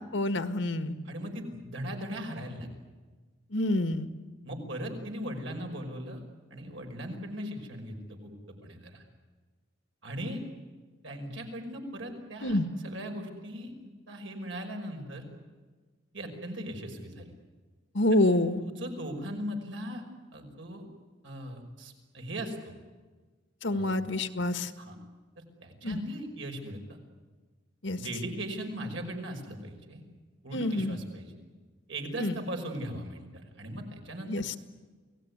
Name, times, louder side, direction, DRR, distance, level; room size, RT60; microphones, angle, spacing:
voice 1, 0.1-0.9 3.5-4.1 12.4-12.7 17.9-18.6 23.6-24.7 25.8-26.0 27.8-28.0 30.5-31.0 32.2-32.3 34.3-34.6, left 1 dB, 70° left, 10 dB, 1.7 m, -27 dB
voice 2, 1.1-2.7 4.4-6.2 6.5-9.0 10.0-10.4 11.0-12.6 12.8-13.7 14.1-15.2 16.1-17.3 18.6-20.0 20.3-20.8 21.2-22.7 23.7-23.9 24.8-25.0 25.6-26.8 28.0-30.0 30.4-31.3 31.9-34.3, equal, 75° right, 3 dB, 5.5 m, -38 dB
29.0 x 18.5 x 9.7 m, 1.4 s
head